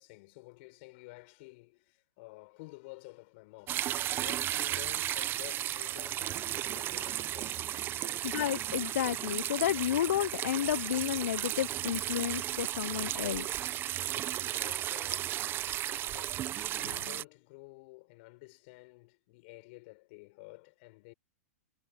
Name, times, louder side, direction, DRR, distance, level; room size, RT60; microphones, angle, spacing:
voice 1, 0.0-7.7 8.0-8.3 13.4-13.9 14.4-15.4 16.1-16.5 16.7-21.1, left 26 dB, 50° left, 6.9 m, -52 dB
sound 1, 3.7-17.2, right 12 dB, 30° right, 0.8 m, -34 dB
voice 2, 8.2-13.6, left 11 dB, 75° left, 0.5 m, -31 dB
hypercardioid pair, 125°, 8 cm